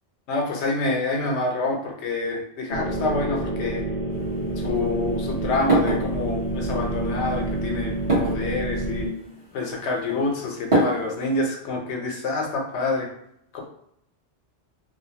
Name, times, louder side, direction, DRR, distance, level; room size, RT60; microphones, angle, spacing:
voice 1, 0.3-3.8 4.6-9.1 9.5-13.1 13.5-13.6, left 3 dB, 85° left, 1 dB, 0.9 m, -27 dB
sound 1, 2.7-9.1, right 2 dB, 40° left, 0.7 m, -28 dB
sound 2, 4.1-11.5, right 1 dB, 30° right, 0.9 m, -29 dB
2.7 x 2.1 x 2.7 m, 0.75 s
omnidirectional pair, 1.1 m